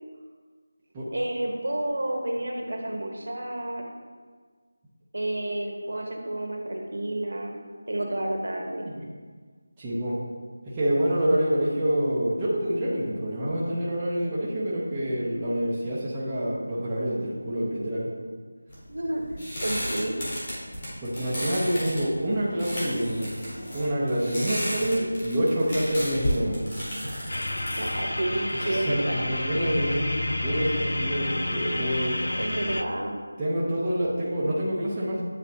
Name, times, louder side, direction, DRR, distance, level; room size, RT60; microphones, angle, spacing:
voice 1, 1.1-3.9 5.1-7.6 7.9-8.9 18.9-19.2 19.6-20.2 27.7-29.3 32.4-33.2, right 1 dB, 65° right, 1 dB, 1.1 m, -30 dB
voice 2, 9.8-10.2 10.6-18.1 21.0-23.3 23.7-26.7 28.6-32.3 33.4-35.2, equal, 10° right, -10 dB, 0.5 m, -27 dB
sound 1, 18.7-29.1, equal, 25° left, 1.2 m, -34 dB
sound 2, 27.3-32.8, left 1 dB, 85° left, 0.4 m, -30 dB
9.0 x 4.0 x 2.8 m, 1.6 s
figure-of-eight pair, 180°, 0 cm